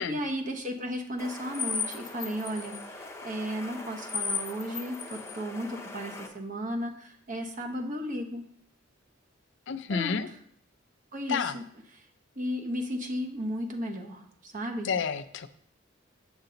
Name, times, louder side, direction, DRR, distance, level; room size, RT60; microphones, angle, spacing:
voice 1, 0.0-8.4 9.9-10.2 11.1-11.6 12.4-14.9, equal, 40° right, 3 dB, 1.0 m, -34 dB
sound 1, 1.2-6.3, left 5 dB, 15° left, 0.8 m, -37 dB
voice 2, 9.7-10.3 11.3-11.5 14.8-15.5, left 6 dB, 65° left, 10 dB, 0.5 m, -30 dB
6.9 x 6.8 x 3.9 m, 0.67 s
head